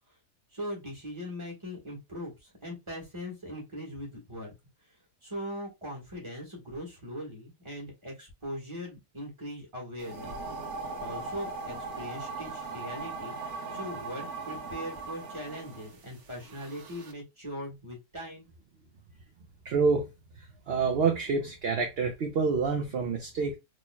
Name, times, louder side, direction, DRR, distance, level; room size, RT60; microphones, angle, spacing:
voice 1, 0.5-4.5 4.8-5.0 5.2-10.4 11.0-13.4 13.7-18.5, equal, 20° right, 1.5 m, -40 dB
sound 1, 10.0-17.1, right 3 dB, 90° right, 1.5 m, -39 dB
voice 2, 19.6-20.1 20.4-23.6, right 5 dB, 55° right, 0.7 m, -27 dB
4.1 x 3.1 x 2.2 m
omnidirectional pair, 1.6 m